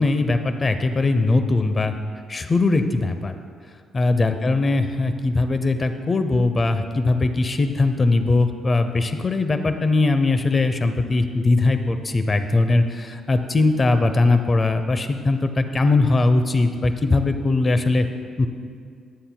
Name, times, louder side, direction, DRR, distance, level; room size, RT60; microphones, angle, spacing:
voice 1, 0.0-1.9 2.3-3.3 3.9-18.1 18.4-18.5, left 3 dB, 30° left, 9 dB, 0.7 m, -20 dB
23.0 x 7.7 x 2.3 m, 2.2 s
cardioid pair, 90°, 0 cm